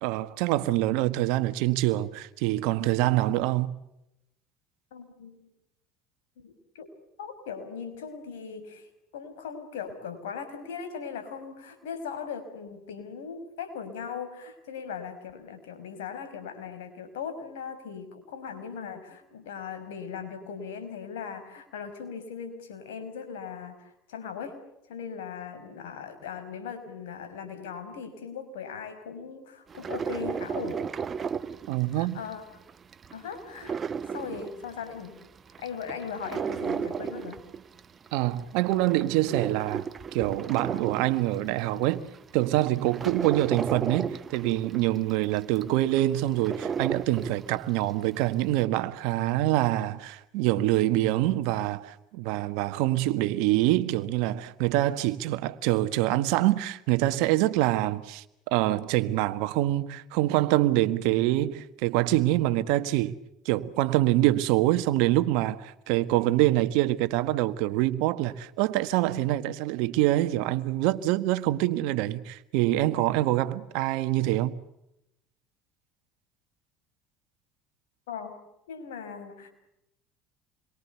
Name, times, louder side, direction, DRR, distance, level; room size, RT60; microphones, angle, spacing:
voice 1, 0.0-3.7 31.7-32.2 38.1-39.9 40.1-42.1 42.3-63.2 63.4-74.5, right 16 dB, 70° right, 1.6 m, -25 dB
voice 2, 4.9-5.5 6.4-6.9 7.2-8.9 9.1-24.6 24.9-30.8 31.9-32.4 33.1-33.8 34.1-35.2 35.6-37.4 78.1-78.3 78.7-79.5, left 6 dB, 80° left, 5.7 m, -39 dB
sound 1, 29.7-32.3 32.7-35.1 35.5-38.1 38.5-41.6 42.1-42.2 42.6-47.8 48.2-48.3, right 6 dB, 35° right, 1.2 m, -34 dB
28.5 x 23.0 x 7.0 m
hypercardioid pair, 75°, 0 cm